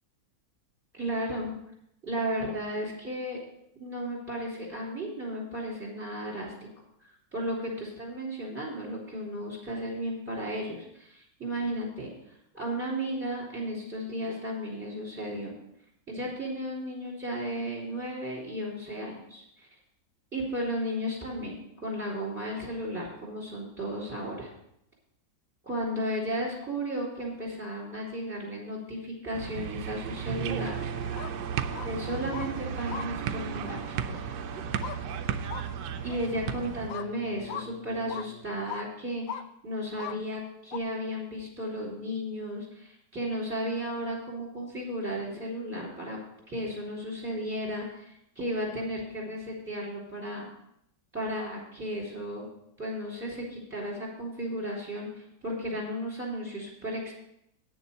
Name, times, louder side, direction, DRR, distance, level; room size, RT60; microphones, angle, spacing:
voice 1, 0.9-1.5 2.0-3.4 3.8-6.5 7.3-12.1 12.5-15.5 16.1-19.7 20.3-24.5 25.6-30.8 31.9-34.1 36.0-46.2 46.5-50.5 51.1-52.5 52.8-57.1, equal, 5° right, -3 dB, 3.5 m, -34 dB
sound 1, 29.3-36.9, right 9 dB, 70° right, 1.1 m, -34 dB
sound 2, 30.3-38.8, right 1 dB, 10° left, 1.4 m, -45 dB
sound 3, 31.1-31.3 31.7-31.9 32.3-32.5 32.9-33.1 33.7-33.8 34.8-35.0 35.5-35.7 36.1-36.2 36.9-37.1 37.5-37.7 38.1-38.3 38.7-38.9 39.3-39.4 40.0-40.2 40.7-40.8, left 8 dB, 80° left, 0.7 m, -38 dB
9.2 x 7.1 x 6.6 m, 0.78 s
omnidirectional pair, 2.1 m